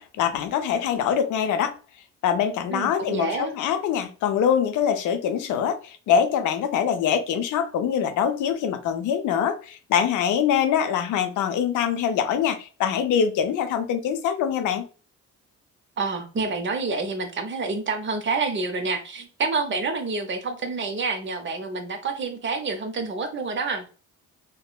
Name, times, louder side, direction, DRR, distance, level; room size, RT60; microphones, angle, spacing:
voice 1, 0.0-1.7 2.2-14.9, left 8 dB, 80° left, 0.6 m, -24 dB
voice 2, 2.7-3.6 16.0-23.9, right 4 dB, 40° right, 0.6 m, -28 dB
3.5 x 2.0 x 2.3 m
cardioid pair, 90°, 30 cm